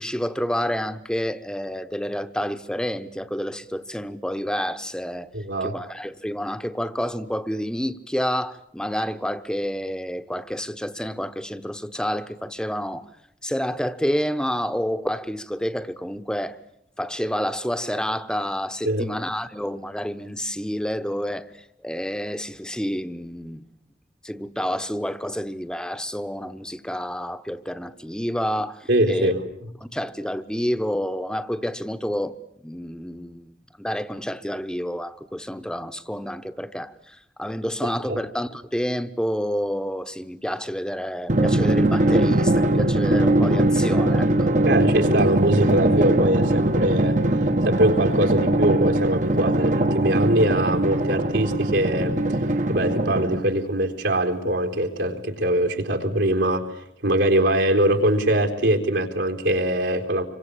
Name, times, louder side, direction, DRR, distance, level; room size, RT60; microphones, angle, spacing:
voice 1, 0.0-5.3 5.6-13.1 13.4-16.6 17.0-21.5 21.8-23.6 24.2-29.3 29.8-32.3 32.6-44.5, equal, 5° left, 1.0 m, -29 dB
voice 2, 5.3-5.8 18.8-19.1 28.9-29.4 38.1-38.2 44.6-47.2 47.6-52.4 52.7-56.7 57.0-60.2, right 1 dB, 80° right, 4.0 m, -22 dB
Drum, 41.3-53.7, right 1 dB, 45° right, 1.1 m, -21 dB
26.5 x 24.0 x 8.5 m
head